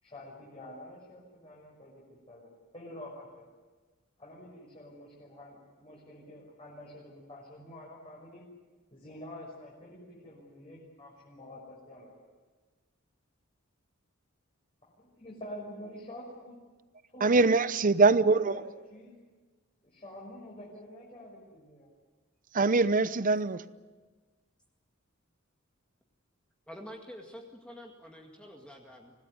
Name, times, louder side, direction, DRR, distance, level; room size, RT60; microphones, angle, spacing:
voice 1, 0.0-3.5 4.2-8.4 8.9-12.2 15.0-16.6 17.1-17.7 18.3-19.1 19.8-21.9, left 1 dB, 30° left, 6.0 m, -47 dB
voice 2, 17.2-18.6 22.5-23.6, right 3 dB, 40° right, 0.8 m, -23 dB
voice 3, 26.7-29.1, equal, 5° left, 2.1 m, -47 dB
25.5 x 18.0 x 9.5 m
head